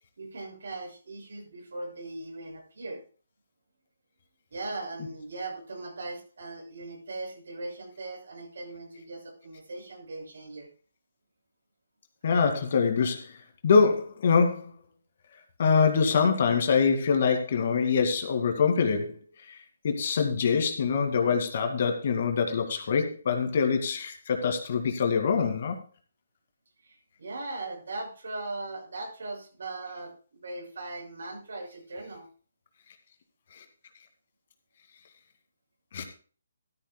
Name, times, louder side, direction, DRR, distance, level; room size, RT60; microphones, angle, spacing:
voice 1, 0.2-3.0 4.5-10.7 26.8-32.3, right 2 dB, 70° right, 1 dB, 6.5 m, -39 dB
voice 2, 12.2-13.3 13.6-14.6 15.6-19.1 19.8-25.8 35.9-36.0, left 5 dB, 50° left, 5 dB, 2.3 m, -24 dB
13.5 x 13.5 x 2.3 m, 0.38 s
figure-of-eight pair, 150°, 0 cm